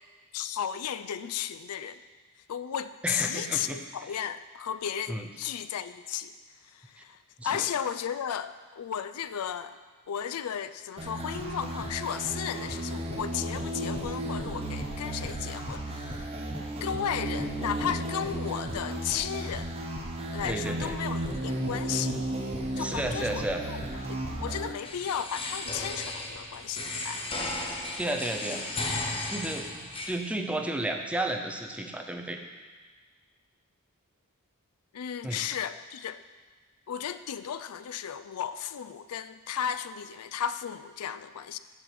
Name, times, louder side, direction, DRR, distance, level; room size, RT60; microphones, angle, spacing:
voice 1, 0.3-2.0 2.5-6.3 6.7-7.2 7.4-9.8 10.1-16.2 16.8-19.8 20.3-22.2 22.8-23.8 24.1-27.2 34.9-36.2 36.9-41.6, left 8 dB, 75° left, 12 dB, 0.4 m, -34 dB
voice 2, 3.0-3.8 5.1-5.3 7.0-7.1 7.4-7.6 20.4-21.0 22.8-23.6 28.0-28.6 29.3-29.8 30.0-32.4 35.2-35.4, right 1 dB, 5° right, 3 dB, 0.6 m, -32 dB
sound 1, 11.0-24.7, right 1 dB, 25° right, 1.1 m, -34 dB
sound 2, 24.8-30.1, left 2 dB, 25° left, 1.0 m, -35 dB
7.3 x 6.2 x 6.8 m, 1.4 s
head